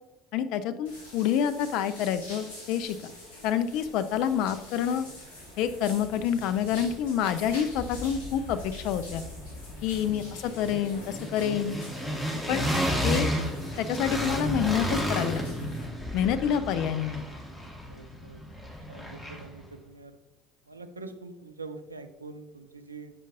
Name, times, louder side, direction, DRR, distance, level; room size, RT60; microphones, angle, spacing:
voice 1, 0.3-3.0 3.4-5.1 5.6-9.2 9.8-11.8 12.5-12.6 13.0-13.3 13.8-15.7 16.1-17.3, left 9 dB, 60° left, 11 dB, 0.4 m, -28 dB
sound 1, 0.9-15.9, left 1 dB, 75° left, 1.8 m, -47 dB
sound 2, 5.7-5.8 6.0-7.2 7.4-19.6, equal, 15° left, 1.8 m, -33 dB
voice 2, 17.9-18.4 18.9-20.2 20.7-23.1, right 3 dB, 90° right, 9 dB, 0.4 m, -44 dB
7.5 x 5.1 x 2.6 m, 0.98 s
figure-of-eight pair, 65°, 0 cm